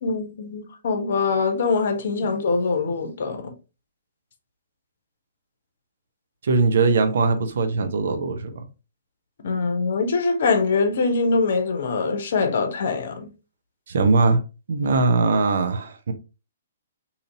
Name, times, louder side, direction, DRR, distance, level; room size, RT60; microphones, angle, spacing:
voice 1, 0.0-3.5 9.4-13.3, left 4 dB, 55° left, 0.7 m, -23 dB
voice 2, 6.4-8.6 13.9-14.4 14.7-16.1, right 3 dB, 60° right, 0.6 m, -21 dB
2.8 x 2.5 x 2.7 m
figure-of-eight pair, 120°, 0 cm